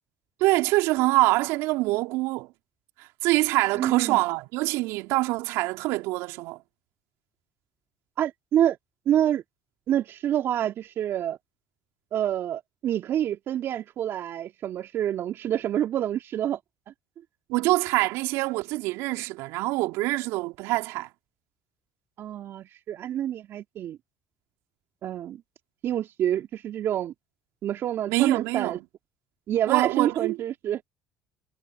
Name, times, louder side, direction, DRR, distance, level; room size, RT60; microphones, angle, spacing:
voice 1, 0.4-2.5 3.0-6.6 17.5-21.1 28.1-28.8 29.7-30.4, right 20 dB, 70° right, 3.2 m, -25 dB
voice 2, 3.7-4.2 8.2-8.8 9.1-9.4 9.9-11.4 12.1-16.6 22.2-24.0 25.0-25.4 25.8-27.1 27.6-28.8 29.5-30.8, right 11 dB, 55° right, 2.5 m, -27 dB
hypercardioid pair, 65°, 5 cm